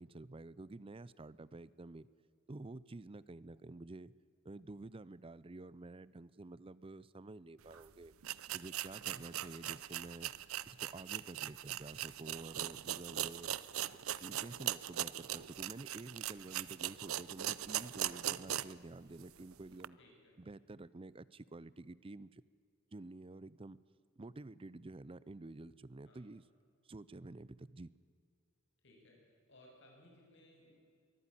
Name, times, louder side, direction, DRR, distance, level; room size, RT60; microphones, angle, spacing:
voice 1, 0.0-2.1 2.5-4.1 4.4-8.1 8.5-10.3 10.7-13.5 14.2-20.0 20.4-22.4 22.9-23.8 24.2-26.4 26.8-27.9, right 2 dB, 25° right, 19 dB, 0.5 m, -50 dB
sound 1, 7.7-7.8 8.2-18.8 19.2-19.3 19.8-19.9, right 12 dB, 80° right, 0.6 m, -40 dB
voice 2, 20.0-20.3 26.0-26.2 28.8-30.7, left 1 dB, 60° left, 0 dB, 6.9 m, -62 dB
23.0 x 14.0 x 9.9 m, 2.3 s
head